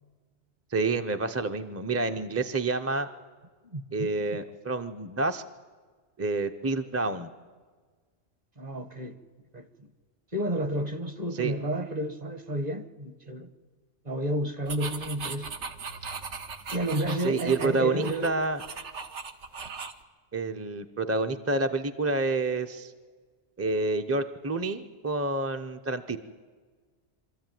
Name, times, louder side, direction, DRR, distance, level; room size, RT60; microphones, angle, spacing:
voice 1, 0.7-3.1 3.9-5.4 6.2-7.3 11.4-11.5 17.2-18.6 20.3-22.9 23.6-26.2, right 3 dB, 15° right, 0.6 m, -28 dB
voice 2, 3.7-4.1 8.6-9.2 9.5-9.9 10.3-13.5 14.0-15.5 16.7-18.3, right 1 dB, 40° right, 1.3 m, -31 dB
sound 1, 14.7-20.0, right 5 dB, 80° right, 1.4 m, -38 dB
24.5 x 13.5 x 9.2 m
omnidirectional pair, 1.2 m